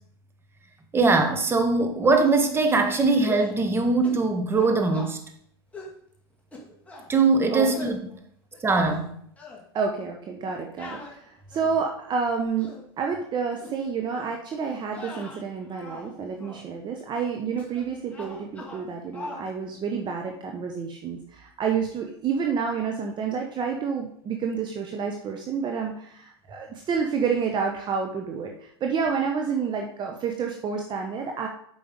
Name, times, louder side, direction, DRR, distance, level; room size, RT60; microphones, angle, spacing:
voice 1, 0.9-5.2 7.1-8.0 8.6-9.1, right 3 dB, 15° right, 5 dB, 1.5 m, -21 dB
sound 1, 3.2-3.6 4.0-4.2 4.5-5.1 5.7-6.0 6.5-7.1 7.6-8.0 8.5-9.1 9.4-9.6 10.8-11.8 12.4-12.8 13.6-13.8 14.1-14.4 14.9-16.1 16.4-16.6 17.6-17.8 18.1-18.9 19.1-19.5, left 2 dB, 10° left, 2.2 m, -41 dB
voice 2, 9.7-12.7 13.0-31.5, right 6 dB, 35° right, 2 dB, 1.1 m, -29 dB
8.3 x 5.5 x 5.2 m, 0.67 s
supercardioid pair, 115°, 14 cm